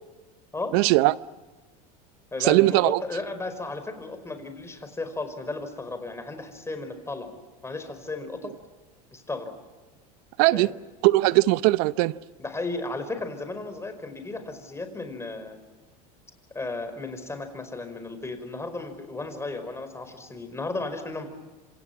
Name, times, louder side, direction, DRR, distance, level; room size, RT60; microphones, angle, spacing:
voice 1, 0.7-1.2 2.4-3.0 10.4-10.7 11.0-12.2, right 20 dB, 65° right, 0.8 m, -20 dB
voice 2, 2.3-7.3 7.6-8.5 9.1-9.5 10.5-10.7 12.4-15.6 16.6-21.3, left 2 dB, 15° left, 5.1 m, -34 dB
27.5 x 26.5 x 6.0 m
hypercardioid pair, 95°, 20 cm